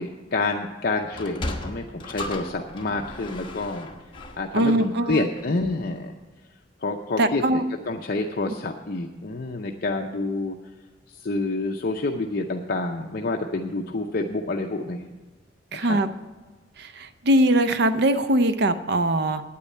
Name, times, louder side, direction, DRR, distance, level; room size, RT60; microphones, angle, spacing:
voice 1, 0.0-3.9 4.4-6.1 6.8-10.6 11.1-15.1 15.7-16.0, left 2 dB, 50° left, 2 dB, 0.6 m, -28 dB
Sliding door, 1.0-5.7, left 1 dB, 25° left, 1.2 m, -36 dB
voice 2, 4.5-5.2 7.2-7.6 15.7-16.1 16.8-19.4, right 1 dB, 60° right, 11 dB, 0.6 m, -21 dB
9.2 x 8.6 x 8.4 m, 1.3 s
head